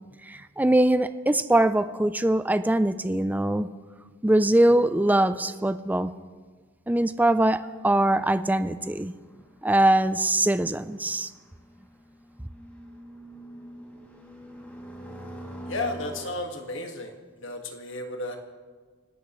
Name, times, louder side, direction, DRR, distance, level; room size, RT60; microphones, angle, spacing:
voice 1, 0.3-3.7 4.2-6.1 6.9-9.1 9.6-11.3, right 1 dB, 10° right, 12 dB, 0.4 m, -22 dB
sound 1, 8.8-16.3, right 1 dB, 10° left, 2.6 m, -44 dB
voice 2, 15.7-18.4, left 2 dB, 65° left, 3 dB, 1.8 m, -33 dB
29.5 x 12.5 x 3.2 m, 1.5 s
head